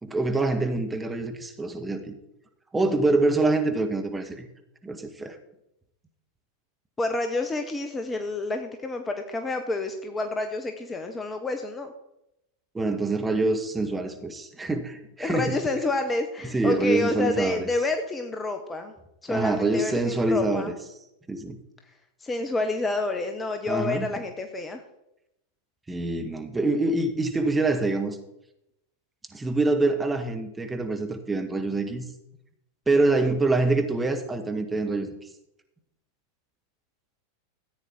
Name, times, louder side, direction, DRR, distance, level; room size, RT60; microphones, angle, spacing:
voice 1, 0.0-2.2 2.7-4.5 4.8-5.4 12.7-15.6 16.4-17.7 19.3-20.7 21.3-21.6 23.7-24.1 25.9-28.2 29.3-32.1 32.9-35.1, right 2 dB, 10° right, 5 dB, 1.5 m, -25 dB
voice 2, 7.0-11.9 15.2-18.9 19.2-20.7 22.2-24.8, left 2 dB, 15° left, 6 dB, 1.2 m, -29 dB
14.0 x 9.1 x 4.5 m, 0.84 s
figure-of-eight pair, 90°, 0 cm